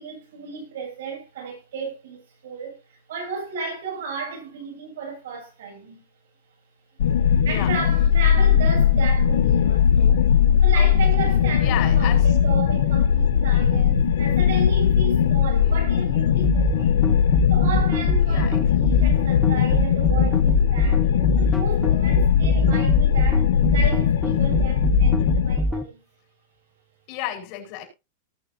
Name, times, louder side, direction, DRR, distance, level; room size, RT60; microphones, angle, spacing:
voice 1, 0.0-6.0 7.4-10.2 10.6-17.0 17.5-26.0, right 4 dB, 75° right, 7.5 m, -34 dB
sound 1, 7.0-25.6, left 8 dB, 85° left, 1.0 m, -19 dB
voice 2, 11.6-12.4 15.5-15.8 18.3-18.8 27.1-27.8, left 13 dB, 40° left, 5.1 m, -33 dB
sound 2, 16.4-25.8, equal, 5° left, 0.7 m, -23 dB
19.5 x 6.6 x 2.8 m
supercardioid pair, 170°, 0 cm